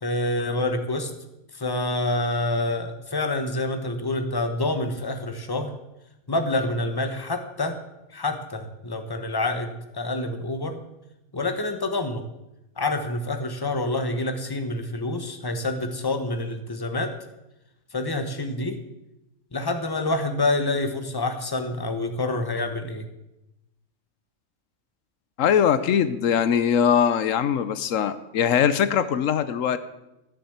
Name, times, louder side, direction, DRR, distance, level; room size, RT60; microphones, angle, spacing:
voice 1, 0.0-1.1 1.5-5.7 6.3-7.8 8.1-10.8 11.3-12.2 12.8-17.1 17.9-18.8 19.5-23.0, left 2 dB, 20° left, 7 dB, 1.2 m, -27 dB
voice 2, 25.4-29.8, left 8 dB, 85° left, 13 dB, 1.2 m, -21 dB
13.5 x 7.1 x 8.0 m, 0.93 s
omnidirectional pair, 1.3 m